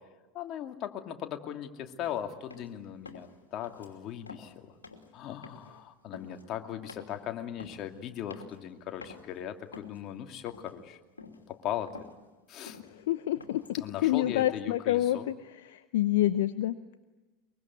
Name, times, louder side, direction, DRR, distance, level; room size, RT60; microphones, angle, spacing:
voice 1, 0.3-4.8 5.1-11.0 11.5-11.9 12.5-12.8 13.7-15.3, left 10 dB, 45° left, 5 dB, 2.5 m, -38 dB
sound 1, 2.0-2.2 2.5-2.7 3.0-3.4 3.6-3.9 4.2-4.5 4.8-5.1 5.4-5.8 6.1-6.5 6.9-7.2 7.6-7.9 8.3-8.7 9.0-9.2 9.7-10.1 10.5-10.8 11.2-11.5 11.7-12.2 12.7-12.9 13.4-13.8, left 4 dB, 90° left, 2.8 m, -48 dB
voice 2, 12.9-13.6 14.0-15.3 15.6-17.0, left 14 dB, 65° left, 12 dB, 0.8 m, -27 dB
23.5 x 23.5 x 9.6 m, 1.2 s
figure-of-eight pair, 85°, 0 cm